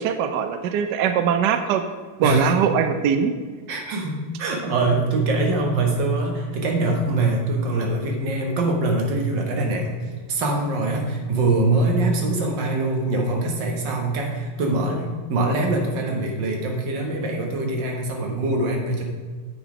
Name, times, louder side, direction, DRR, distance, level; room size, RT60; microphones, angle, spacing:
voice 1, 0.0-1.8 2.2-3.3, right 8 dB, 75° right, 8 dB, 0.9 m, -21 dB
voice 2, 2.2-2.5 3.7-10.0 10.3-19.0, right 2 dB, 60° right, 1 dB, 1.9 m, -23 dB
7.7 x 6.3 x 5.0 m, 1.5 s
omnidirectional pair, 2.4 m